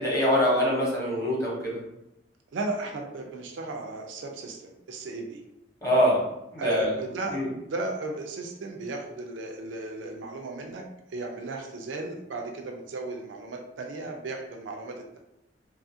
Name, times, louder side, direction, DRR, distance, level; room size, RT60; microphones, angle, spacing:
voice 1, 0.0-1.8 5.8-6.2 6.5-6.9 7.3-7.5, equal, 15° left, -5 dB, 0.8 m, -24 dB
voice 2, 2.5-5.4 6.6-7.4 7.7-10.8 11.1-15.2, right 2 dB, 80° right, 2 dB, 0.4 m, -35 dB
2.7 x 2.4 x 2.6 m, 0.87 s
head